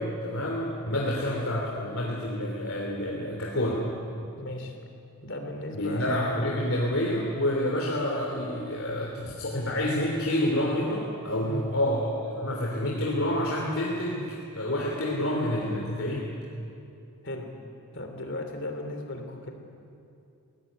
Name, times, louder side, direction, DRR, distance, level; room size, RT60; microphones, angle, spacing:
voice 1, 0.0-3.8 5.7-16.2, left 1 dB, 70° left, -2 dB, 3.2 m, -28 dB
voice 2, 4.4-4.7 5.2-6.1 11.4-11.7 17.2-17.5 17.9-19.5, left 1 dB, 55° left, 4 dB, 3.2 m, -36 dB
22.0 x 17.5 x 9.9 m, 2.6 s
head